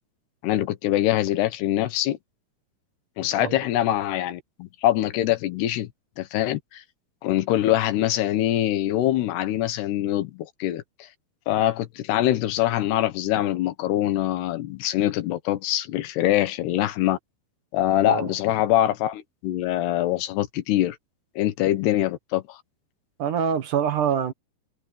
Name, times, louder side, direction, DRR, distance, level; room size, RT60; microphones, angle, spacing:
voice 1, 0.4-2.2 3.2-5.9 6.2-6.8 7.2-10.8 11.5-17.2 17.7-21.0 21.4-22.6, left 13 dB, 85° left, 3.3 m, -24 dB
voice 2, 23.2-24.3, right 8 dB, 60° right, 2.6 m, -25 dB
omnidirectional pair, 4.6 m